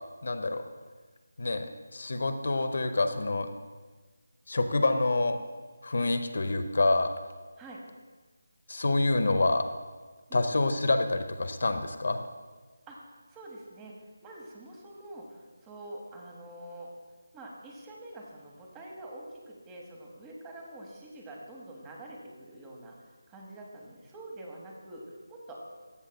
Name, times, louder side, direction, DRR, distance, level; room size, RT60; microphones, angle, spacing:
voice 1, 0.2-0.6 1.4-1.7 1.9-3.5 4.5-5.4 5.8-7.1 8.7-9.6 10.3-12.2, left 2 dB, 55° left, 7 dB, 0.6 m, -27 dB
voice 2, 12.9-16.9 17.3-22.9 23.3-25.6, right 1 dB, 15° right, -1 dB, 0.9 m, -46 dB
13.5 x 6.3 x 2.2 m, 1.4 s
figure-of-eight pair, 160°, 0 cm